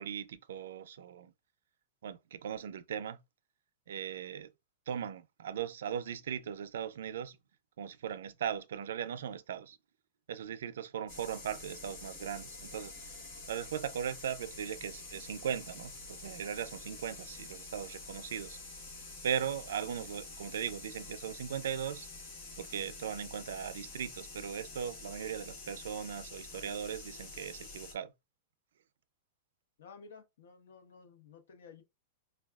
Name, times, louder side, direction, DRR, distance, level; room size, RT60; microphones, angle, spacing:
voice 1, 0.0-1.3 2.0-3.2 3.9-4.5 4.9-7.4 7.8-9.8 10.3-12.9 13.5-18.6 19.2-22.1 22.6-28.1, right 8 dB, 85° right, 0.4 m, -38 dB
sound 1, 11.1-27.9, left 3 dB, 50° left, 1.2 m, -48 dB
voice 2, 29.8-31.8, left 5 dB, 80° left, 0.9 m, -54 dB
4.6 x 2.2 x 2.3 m
supercardioid pair, 170°, 0 cm